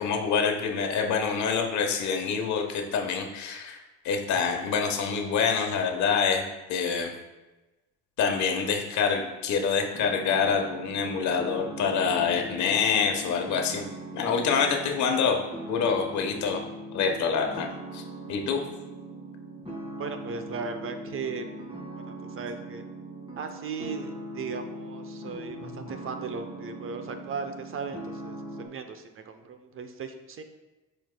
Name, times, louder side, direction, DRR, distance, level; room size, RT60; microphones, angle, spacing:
voice 1, 0.0-6.4 6.7-7.1 8.2-13.8 14.1-15.4 15.7-16.6 16.9-17.7 17.9-18.0 18.3-18.6, left 6 dB, 70° left, 3 dB, 1.1 m, -26 dB
sound 1, 9.9-28.7, right 1 dB, 20° right, 1.9 m, -40 dB
voice 2, 20.0-21.4 22.1-22.8 23.4-30.4, right 5 dB, 45° right, 7 dB, 0.7 m, -37 dB
10.5 x 4.5 x 2.2 m, 1.1 s
cardioid pair, 105°, 30 cm